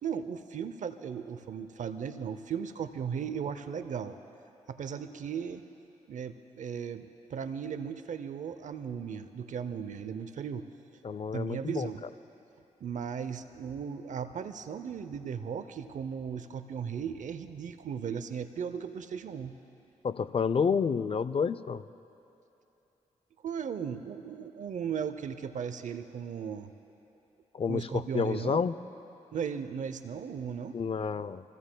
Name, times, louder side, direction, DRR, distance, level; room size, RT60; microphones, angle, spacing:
voice 1, 0.0-4.2 4.7-5.6 6.1-10.7 11.3-12.0 12.8-19.5 23.4-26.7 27.7-28.6 29.3-30.8, right 7 dB, 70° right, 10 dB, 0.6 m, -36 dB
voice 2, 11.0-11.9 20.0-21.8 27.5-28.8 30.7-31.4, left 6 dB, 45° left, 15 dB, 0.5 m, -29 dB
29.0 x 16.5 x 2.3 m, 2.9 s
cardioid pair, 55°, 13 cm